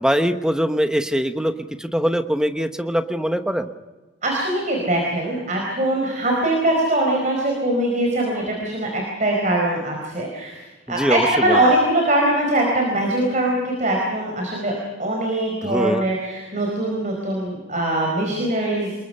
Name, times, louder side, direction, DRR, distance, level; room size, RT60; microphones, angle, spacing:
voice 1, 0.0-1.5 1.8-3.7 10.9-11.6 15.6-16.0, equal, 5° right, 7 dB, 1.1 m, -22 dB
voice 2, 4.2-10.6 10.9-14.7 15.0-18.9, right 1 dB, 40° right, 0 dB, 4.5 m, -22 dB
27.5 x 22.0 x 5.7 m, 1.2 s
head